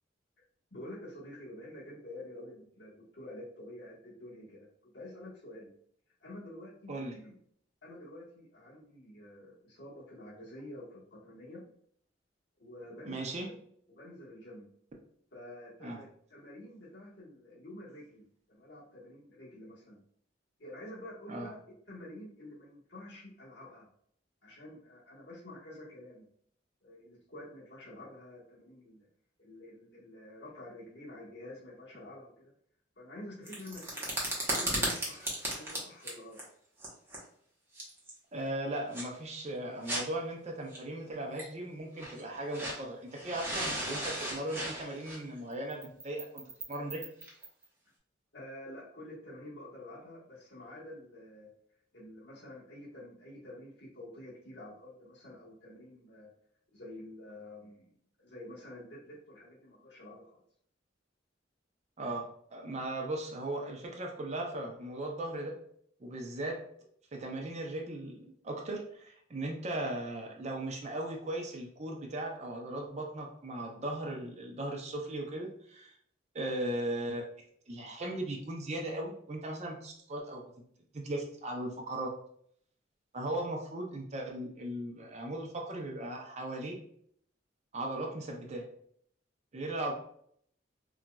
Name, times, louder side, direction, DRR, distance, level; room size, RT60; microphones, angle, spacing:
voice 1, 0.7-5.7 6.2-7.4 7.8-11.6 12.6-13.6 13.9-14.7 15.3-20.0 20.6-21.6 21.9-23.9 24.4-26.3 26.8-29.1 29.4-32.5 33.0-36.4 48.3-51.5 51.9-56.3 56.7-57.9 58.2-60.4, left 1 dB, 65° left, -6 dB, 1.4 m, -48 dB
voice 2, 13.0-13.5 15.8-16.0 21.3-21.5 38.3-46.4 46.7-47.1 62.0-65.6 66.0-66.6 67.1-75.9 76.3-77.2 77.7-80.4 80.9-82.1 83.1-86.8 87.7-88.7 89.5-89.9, right 1 dB, 35° right, 1 dB, 0.5 m, -37 dB
sound 1, 33.5-36.4 36.8-37.2 37.8-38.1 38.9-39.0 39.8-40.0 40.7-40.8 41.4-41.5 42.0-42.8 43.1-47.6, right 1 dB, 10° right, 0.9 m, -35 dB
4.0 x 2.4 x 2.2 m, 0.65 s
head